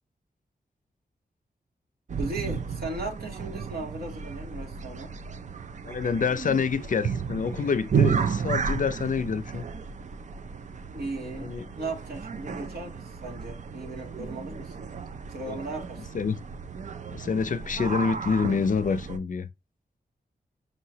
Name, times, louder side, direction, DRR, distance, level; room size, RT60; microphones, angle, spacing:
sound 1, 2.1-19.2, right 6 dB, 50° right, 0.4 m, -33 dB
voice 1, 2.2-5.1 10.9-14.9 15.3-16.1, right 2 dB, 75° right, 2.0 m, -37 dB
voice 2, 5.8-9.6 11.4-11.6 12.5-12.6 15.5-15.6 16.1-16.4 17.1-19.5, left 5 dB, 55° left, 0.5 m, -27 dB
5.4 x 2.9 x 2.7 m
wide cardioid pair, 135°, 16 cm